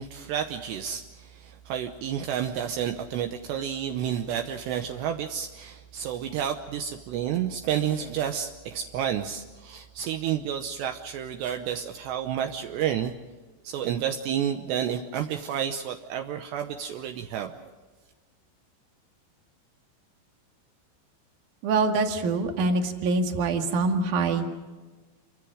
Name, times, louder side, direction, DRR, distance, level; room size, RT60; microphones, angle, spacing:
voice 1, 0.0-13.1 13.6-17.7, right 9 dB, 75° right, 5 dB, 3.0 m, -30 dB
voice 2, 21.6-24.5, right 3 dB, 50° right, 4 dB, 2.9 m, -25 dB
28.5 x 24.5 x 5.0 m, 1.3 s
omnidirectional pair, 5.2 m